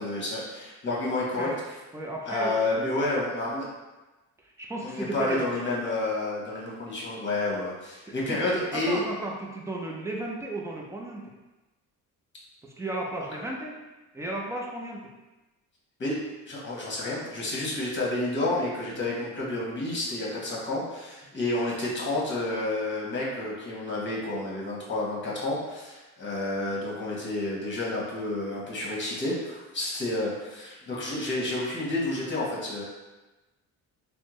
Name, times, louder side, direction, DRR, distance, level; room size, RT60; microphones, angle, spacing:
voice 1, 0.0-1.5 2.3-3.7 4.8-9.0 16.0-16.2 16.4-32.8, left 2 dB, 30° left, -4 dB, 1.1 m, -30 dB
voice 2, 1.9-2.5 4.6-5.5 8.1-11.3 12.6-13.8 14.1-15.1 30.8-31.0, right 1 dB, 10° right, -2 dB, 0.5 m, -35 dB
3.5 x 2.1 x 3.0 m, 1.1 s
cardioid pair, 95°, 37 cm